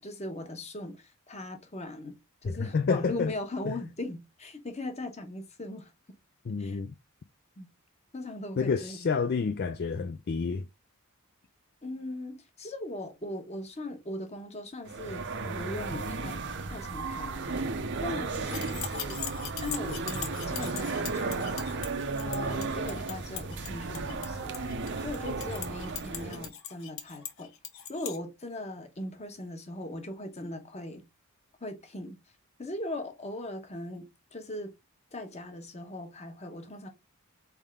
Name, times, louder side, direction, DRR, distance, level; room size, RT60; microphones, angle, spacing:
voice 1, 0.0-5.9 6.6-6.8 7.6-7.7 8.1-9.1 11.8-19.2 19.6-24.6 25.0-27.5 27.9-31.0 31.6-32.2 32.6-34.7 35.1-36.9, left 1 dB, 30° left, 1.0 m, -39 dB
voice 2, 2.4-3.3 3.7-3.8 6.5-6.9 8.6-10.7, left 5 dB, 45° left, 0.3 m, -29 dB
sound 1, 14.9-26.5, right 3 dB, 50° right, 0.7 m, -34 dB
sound 2, 18.4-28.2, left 9 dB, 60° left, 1.0 m, -40 dB
4.2 x 3.6 x 3.5 m
head